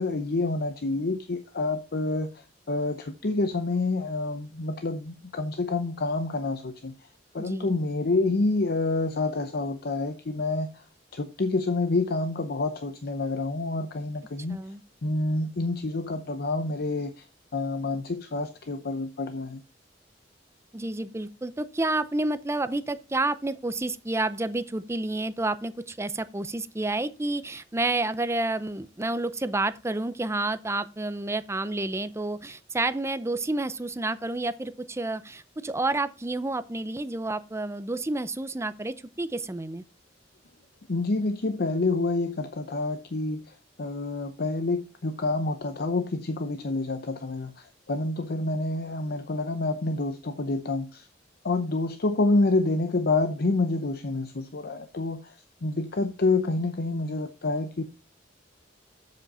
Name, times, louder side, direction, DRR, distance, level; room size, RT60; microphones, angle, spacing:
voice 1, 0.0-6.9 7.3-10.8 11.1-14.6 15.0-17.2 17.5-19.6 40.9-51.1 51.4-55.3 55.6-57.8, left 2 dB, 55° left, 0.7 m, -28 dB
voice 2, 7.4-7.8 14.5-14.8 20.7-39.8, right 2 dB, 15° right, 0.5 m, -30 dB
7.8 x 7.4 x 4.2 m
head